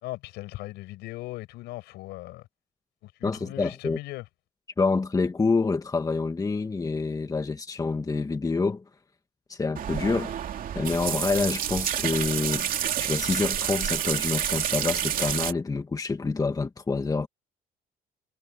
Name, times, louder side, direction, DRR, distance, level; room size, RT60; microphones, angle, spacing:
voice 1, 0.0-2.5 3.0-4.2, left 18 dB, 90° left, 5.6 m, -38 dB
voice 2, 3.2-4.0 4.8-8.8 9.5-10.3 10.8-12.7 13.0-17.3, left 4 dB, 20° left, 1.8 m, -27 dB
sound 1, 9.7-15.5, right 9 dB, 55° right, 2.8 m, -29 dB
cardioid pair, 110°, 17 cm